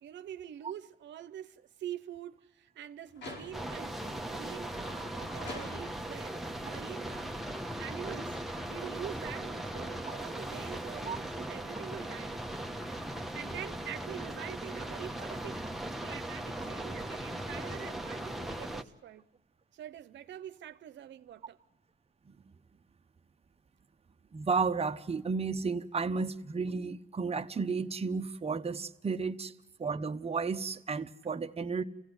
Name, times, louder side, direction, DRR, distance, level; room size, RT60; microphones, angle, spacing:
voice 1, 0.0-8.4 8.7-12.4 13.3-15.6 16.0-19.3 19.7-21.6, right 10 dB, 85° right, 0.7 m, -45 dB
sound 1, 3.1-3.9 4.5-6.2 6.8-10.4, left 2 dB, 85° left, 5.2 m, -50 dB
sound 2, 3.5-18.8, right 1 dB, ahead, 1.1 m, -39 dB
voice 2, 24.3-29.5 29.8-31.8, right 4 dB, 35° right, 0.9 m, -33 dB
28.0 x 16.5 x 8.0 m
cardioid pair, 85°, 18 cm